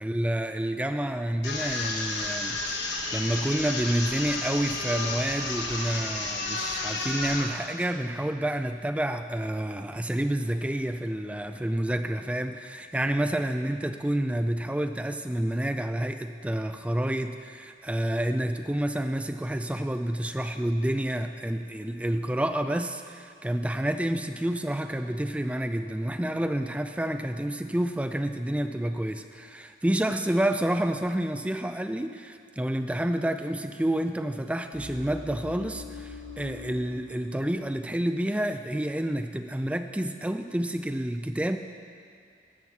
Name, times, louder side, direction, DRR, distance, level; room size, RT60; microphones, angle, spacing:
voice 1, 0.0-41.6, right 1 dB, 5° right, 7 dB, 0.3 m, -29 dB
sound 1, 1.4-7.5, left 3 dB, 75° left, 1.2 m, -31 dB
sound 2, 34.7-38.2 38.5-38.8, left 3 dB, 40° left, 1.7 m, -43 dB
11.0 x 6.3 x 7.1 m, 2.3 s
head